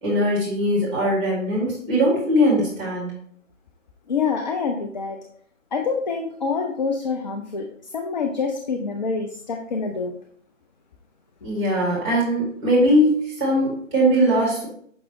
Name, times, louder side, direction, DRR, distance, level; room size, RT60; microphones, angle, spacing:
voice 1, 0.0-3.1 11.4-14.7, equal, 25° right, -5 dB, 2.1 m, -20 dB
voice 2, 4.1-5.2 5.7-10.1, left 5 dB, 35° left, 4 dB, 0.5 m, -26 dB
6.2 x 5.9 x 3.0 m, 0.62 s
figure-of-eight pair, 140°, 38 cm